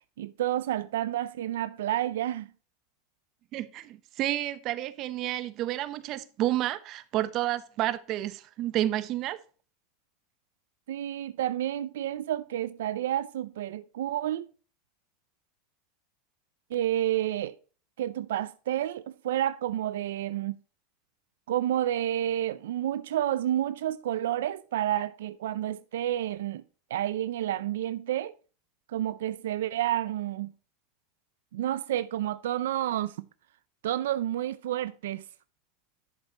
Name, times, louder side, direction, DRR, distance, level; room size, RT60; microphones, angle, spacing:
voice 1, 0.2-2.5 10.9-14.5 16.7-17.6 18.0-20.6 21.5-26.6 26.9-28.4 28.9-30.5 31.5-33.3 33.8-35.2, right 12 dB, 90° right, 0.4 m, -30 dB
voice 2, 3.5-9.4, right 14 dB, 45° right, 0.9 m, -30 dB
11.0 x 6.6 x 3.0 m
supercardioid pair, 135°, 0 cm